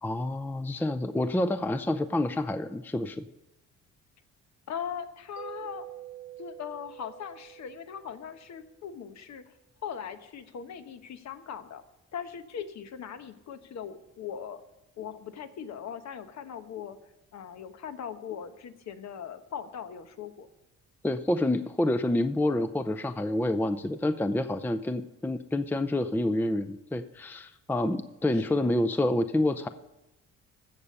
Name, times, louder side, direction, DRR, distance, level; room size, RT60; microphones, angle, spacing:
voice 1, 0.0-3.2 21.0-29.7, left 1 dB, 5° left, 11 dB, 0.5 m, -28 dB
voice 2, 4.7-5.9 6.4-9.5 9.8-11.8 12.1-14.6 15.0-17.0 17.3-20.5 28.3-28.8, left 8 dB, 65° left, 9 dB, 1.1 m, -40 dB
Mallet percussion, 5.4-8.8, right 14 dB, 55° right, 0.8 m, -46 dB
15.5 x 6.9 x 5.4 m, 0.96 s
cardioid pair, 90°, 30 cm